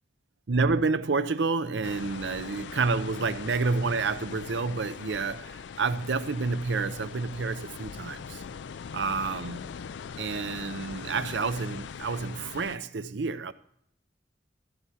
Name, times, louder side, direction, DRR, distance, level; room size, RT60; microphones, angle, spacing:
voice 1, 0.5-8.4 8.9-9.6 10.2-13.5, right 4 dB, 75° right, 0.6 m, -29 dB
sound 1, 1.8-12.8, left 6 dB, 80° left, 0.4 m, -41 dB
14.0 x 4.7 x 7.1 m
head